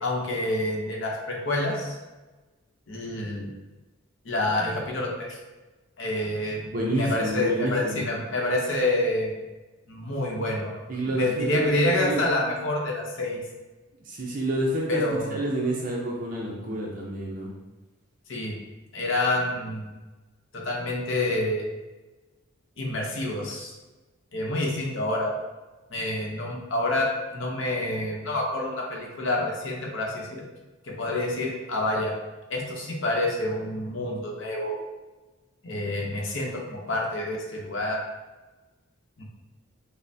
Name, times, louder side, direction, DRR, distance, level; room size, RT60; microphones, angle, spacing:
voice 1, 0.0-2.0 2.9-3.5 4.2-5.4 6.0-9.4 9.9-13.4 14.9-15.4 18.3-18.6 18.9-19.9 20.5-21.6 22.8-23.7 24.3-25.3 25.9-30.4 30.8-32.1 32.5-34.8 35.6-38.0 39.2-39.3, left 1 dB, 65° left, -1 dB, 0.7 m, -28 dB
voice 2, 6.7-8.0 10.9-12.2 14.1-15.0 15.3-17.5, right 1 dB, 40° right, -2 dB, 0.5 m, -28 dB
5.2 x 2.0 x 2.6 m, 1.2 s
head